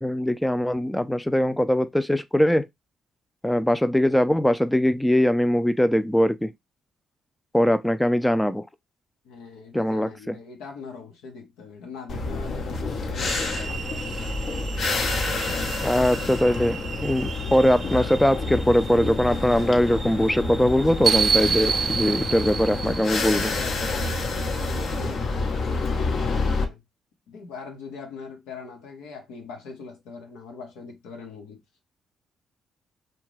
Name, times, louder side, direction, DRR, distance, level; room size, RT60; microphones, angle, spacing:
voice 1, 0.0-2.7 3.4-6.5 7.5-8.6 9.7-10.4 15.8-23.5, equal, 5° left, 0.3 m, -21 dB
voice 2, 9.2-13.9 23.3-26.8 27.3-31.6, left 4 dB, 85° left, 0.9 m, -42 dB
sound 1, 12.1-26.7, left 3 dB, 60° left, 0.8 m, -28 dB
sound 2, 13.2-23.6, right 6 dB, 50° right, 0.5 m, -31 dB
2.7 x 2.2 x 3.1 m
supercardioid pair, 60°, 0 cm